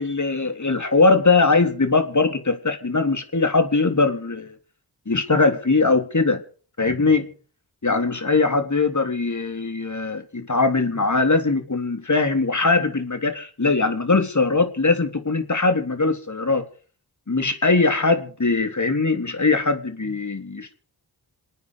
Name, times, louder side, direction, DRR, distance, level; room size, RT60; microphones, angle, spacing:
voice 1, 0.0-4.5 5.1-6.4 6.8-7.3 7.8-16.6 17.3-20.7, left 3 dB, 45° left, 7 dB, 3.4 m, -21 dB
28.0 x 9.4 x 4.8 m, 0.42 s
cardioid pair, 40°, 42 cm